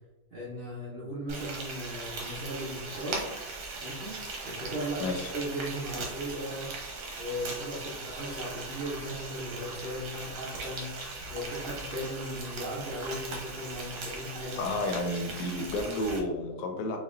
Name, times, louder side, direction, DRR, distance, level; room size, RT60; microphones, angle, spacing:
voice 1, 0.3-3.3 3.8-4.2 4.4-6.7 7.2-10.9 11.3-14.6, equal, 45° right, -6 dB, 0.7 m, -37 dB
Frying (food), 1.3-16.2, right 3 dB, 75° right, 1.3 m, -39 dB
voice 2, 5.0-5.3 14.6-17.0, left 1 dB, 75° left, 4 dB, 1.1 m, -31 dB
4.1 x 2.7 x 2.5 m, 1.1 s
omnidirectional pair, 1.8 m